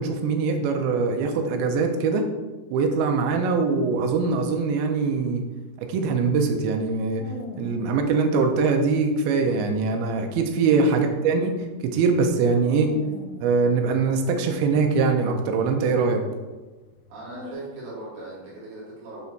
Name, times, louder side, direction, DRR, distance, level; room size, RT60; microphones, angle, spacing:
voice 1, 0.0-2.2 2.7-5.4 5.8-7.3 7.6-11.5 11.8-12.9 13.4-16.2, right 4 dB, 80° right, 4 dB, 2.3 m, -22 dB
sound 1, 5.2-8.5 8.9-9.0 9.5-9.6 9.8-12.4 12.7-14.6 14.9-17.5, left 3 dB, 80° left, 2.3 m, -44 dB
voice 2, 17.1-19.3, right 2 dB, 50° right, -7 dB, 3.6 m, -39 dB
8.3 x 3.4 x 4.5 m, 1.2 s
omnidirectional pair, 5.0 m